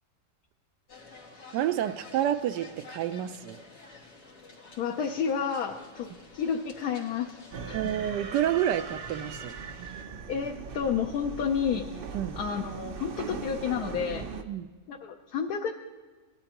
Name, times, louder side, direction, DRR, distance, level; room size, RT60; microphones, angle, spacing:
sound 1, 0.9-10.0, left 3 dB, 90° left, 2.5 m, -50 dB
voice 1, 1.5-3.6 7.7-9.6 12.1-12.4 14.5-14.7, right 11 dB, 80° right, 11 dB, 1.2 m, -29 dB
voice 2, 4.8-6.1 6.3-7.4 7.7-7.8 10.3-12.0 12.4-14.3 14.9-15.7, left 7 dB, 70° left, 3 dB, 1.2 m, -30 dB
sound 2, 7.5-14.4, right 6 dB, 60° right, 0.5 m, -39 dB
19.0 x 12.0 x 3.0 m, 1.4 s
omnidirectional pair, 1.8 m